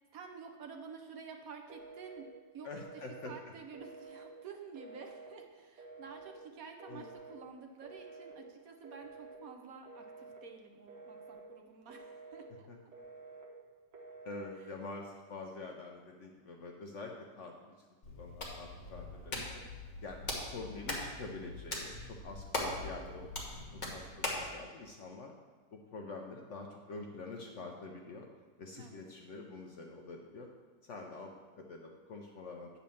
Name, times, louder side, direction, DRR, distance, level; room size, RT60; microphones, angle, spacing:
voice 1, 0.1-2.3 2.5-2.7 3.2-12.7 28.8-29.0, right 5 dB, 65° right, 4 dB, 1.1 m, -50 dB
Telephone, 1.7-2.3 2.7-3.3 3.7-4.3 4.8-5.3 5.8-6.3 6.8-7.4 7.8-8.4 8.8-9.4 9.9-10.4 10.9-11.4 11.9-12.5 12.9-13.5 13.9-14.5, right 4 dB, 85° right, 1.8 m, -51 dB
voice 2, 2.6-3.3 6.9-7.1 12.7-12.8 14.2-17.7 18.1-19.6 20.0-20.2 20.5-23.6 23.9-25.3 25.7-28.3 28.6-30.5 30.8-32.7, left 3 dB, 60° left, 1 dB, 0.8 m, -46 dB
Hands, 18.0-24.5, left 2 dB, 30° left, 1.3 m, -41 dB
8.7 x 4.3 x 6.9 m, 1.4 s
omnidirectional pair, 1.8 m